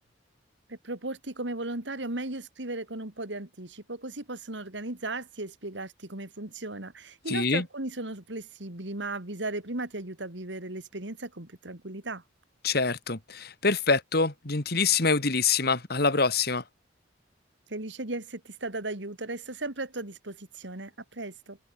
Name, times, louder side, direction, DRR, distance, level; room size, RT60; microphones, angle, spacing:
voice 1, 0.7-12.2 17.7-21.6, right 2 dB, 75° right, 3.1 m, -36 dB
voice 2, 7.3-7.6 12.6-16.6, left 4 dB, 55° left, 2.6 m, -25 dB
head